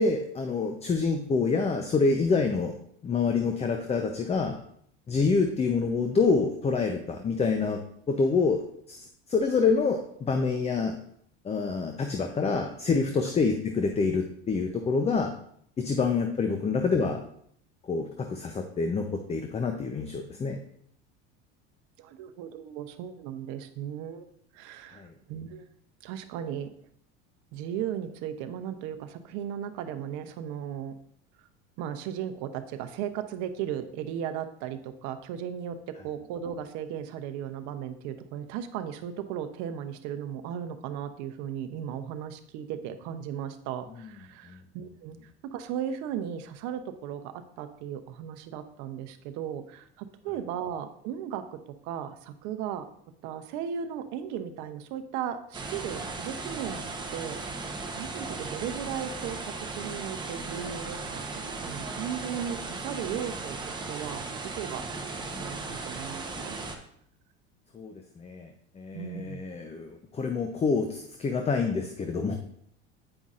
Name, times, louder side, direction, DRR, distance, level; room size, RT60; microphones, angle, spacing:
voice 1, 0.0-2.7 3.0-4.6 5.1-7.8 8.1-11.0 11.4-15.3 15.8-17.2 17.8-20.6 24.9-25.1 44.5-44.6 65.3-65.6 67.7-68.5 68.8-72.4, left 4 dB, 20° left, 5 dB, 0.6 m, -27 dB
voice 2, 22.0-24.3 24.5-25.6 26.0-26.7 27.5-30.9 31.8-45.2 45.4-52.9 53.2-56.8 57.1-57.7 58.0-61.2 61.6-64.2 64.5-64.8 65.2-66.6 68.9-69.4, right 9 dB, 65° right, 9 dB, 0.8 m, -36 dB
sound 1, 55.5-66.8, right 3 dB, 15° right, 0.9 m, -37 dB
8.8 x 5.3 x 2.5 m, 0.67 s
supercardioid pair, 105°, 31 cm